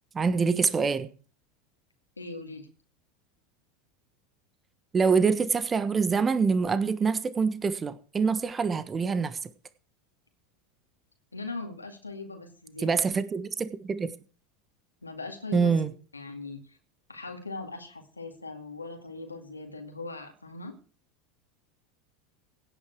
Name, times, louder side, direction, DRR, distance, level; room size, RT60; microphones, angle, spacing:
voice 1, 0.1-1.1 4.9-9.4 12.8-14.1 15.5-15.9, right 5 dB, 20° right, 14 dB, 1.2 m, -25 dB
voice 2, 2.2-2.7 11.3-12.9 15.0-15.8 16.1-16.8 17.1-20.8, left 3 dB, 85° left, 4 dB, 2.2 m, -40 dB
17.0 x 8.8 x 4.7 m, 0.39 s
figure-of-eight pair, 80°, 0 cm